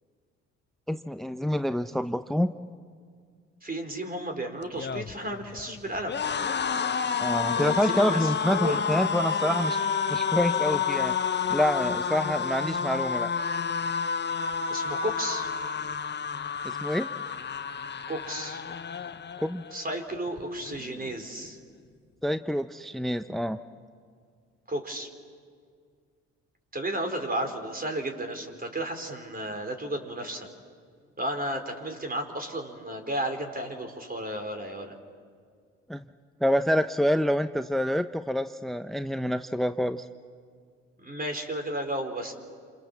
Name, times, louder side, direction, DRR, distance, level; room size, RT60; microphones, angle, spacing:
voice 1, 0.9-2.5 7.2-9.8 10.1-11.1 11.5-13.3 16.6-17.1 19.4-19.6 22.2-23.6 35.9-36.0 36.4-40.0, equal, ahead, 10 dB, 0.8 m, -27 dB
voice 2, 3.6-6.2 7.6-8.8 14.7-15.5 18.1-18.6 19.7-21.6 24.7-25.1 26.7-30.5 31.2-35.0 41.0-42.3, right 1 dB, 25° right, 4 dB, 4.6 m, -33 dB
sound 1, 4.6-19.8 20.2-20.4 20.7-21.5, left 6 dB, 30° left, 1.0 m, -30 dB
28.0 x 28.0 x 7.3 m, 2.1 s
hypercardioid pair, 55°, 34 cm